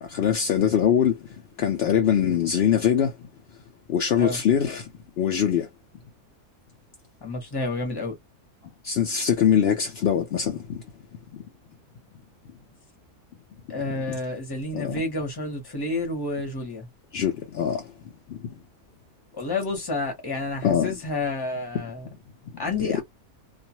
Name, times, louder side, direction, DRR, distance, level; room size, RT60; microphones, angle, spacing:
voice 1, 0.0-1.2 1.6-3.1 3.9-4.9 5.2-5.7 8.8-10.8 11.3-11.4 14.7-15.0 17.1-17.9 18.3-18.5 20.6-20.9 22.5-22.9, left 9 dB, 75° left, 0.5 m, -23 dB
voice 2, 7.2-8.2 13.7-16.9 19.3-22.1 22.6-23.0, left 2 dB, 20° left, 0.8 m, -30 dB
2.4 x 2.4 x 2.8 m
omnidirectional pair, 1.6 m